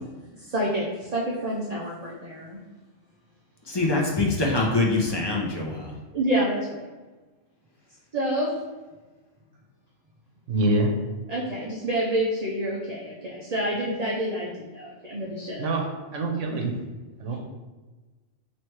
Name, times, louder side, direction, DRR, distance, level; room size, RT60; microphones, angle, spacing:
voice 1, 0.4-2.6 6.1-6.9 8.1-8.5 11.3-15.7, right 1 dB, 45° right, -4 dB, 0.6 m, -28 dB
voice 2, 3.7-5.9, left 2 dB, 30° left, -2 dB, 0.5 m, -24 dB
voice 3, 10.5-10.9 15.6-15.9 16.1-16.7 17.2-17.4, right 2 dB, 80° right, 1 dB, 1.1 m, -24 dB
3.2 x 3.1 x 4.4 m, 1.2 s
omnidirectional pair, 1.3 m